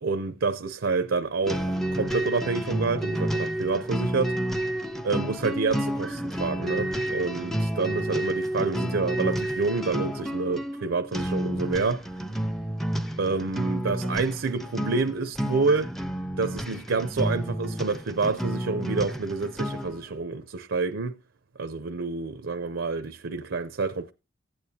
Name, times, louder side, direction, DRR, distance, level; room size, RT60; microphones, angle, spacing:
voice 1, 0.0-4.4 5.0-12.0 13.2-15.9 16.4-21.1 21.6-24.1, right 4 dB, 75° right, 0.6 m, -28 dB
sound 1, 1.5-20.0, right 1 dB, ahead, 0.5 m, -30 dB
15.0 x 8.8 x 2.8 m
head